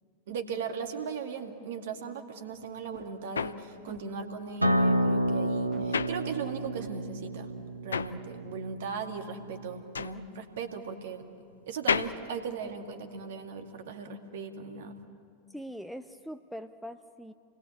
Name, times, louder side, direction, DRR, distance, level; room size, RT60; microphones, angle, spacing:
voice 1, 0.3-7.5 7.8-11.2 11.7-14.9, right 5 dB, 55° right, 5 dB, 2.4 m, -38 dB
sound 1, 2.6-6.9 7.2-13.4, left 6 dB, 70° left, 0.7 m, -35 dB
sound 2, 2.8-3.3 3.6-4.0 4.6-4.8 5.2-5.4 5.7-5.9 6.4-6.5 6.8-6.9, right 11 dB, 35° right, 1.2 m, -47 dB
Acoustic guitar, 4.6-9.8, right 1 dB, 85° right, 1.1 m, -30 dB
voice 2, 15.5-17.3, equal, ahead, 9 dB, 0.8 m, -42 dB
29.0 x 21.0 x 8.5 m, 2.3 s
figure-of-eight pair, 90°, 0 cm